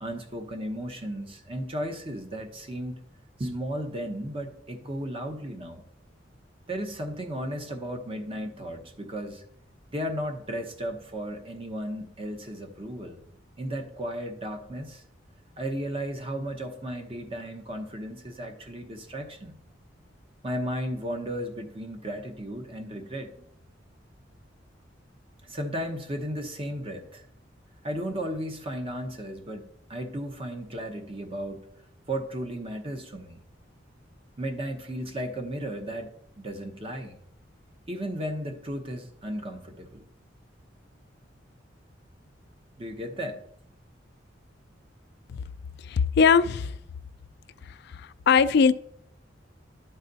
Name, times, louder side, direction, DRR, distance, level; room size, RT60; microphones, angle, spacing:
voice 1, 0.0-3.0 3.4-5.8 6.7-9.4 9.9-13.2 13.6-15.0 15.6-19.6 20.4-23.3 25.4-27.3 27.8-31.7 32.1-33.4 34.4-37.2 37.9-40.0 42.8-43.4, equal, 30° right, 5 dB, 0.9 m, -34 dB
voice 2, 45.8-46.7 47.8-48.7, left 6 dB, 60° left, 14 dB, 0.4 m, -20 dB
11.5 x 4.1 x 4.0 m, 0.72 s
head